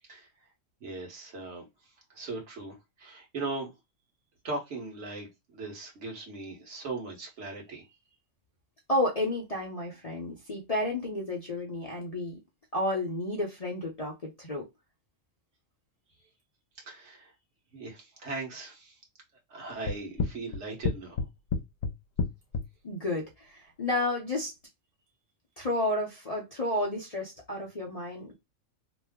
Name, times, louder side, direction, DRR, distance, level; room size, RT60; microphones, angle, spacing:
voice 1, 0.8-1.6 2.1-3.7 4.4-8.0 16.2-16.3 16.8-17.3 17.7-19.0 19.5-21.2, right 3 dB, 60° right, 1.4 m, -39 dB
voice 2, 8.9-12.4 12.7-14.7 22.8-24.5 25.6-28.3, left 1 dB, 35° left, 0.7 m, -31 dB
sound 1, 19.9-22.7, left 5 dB, 75° left, 1.0 m, -29 dB
3.0 x 2.1 x 3.4 m
omnidirectional pair, 1.4 m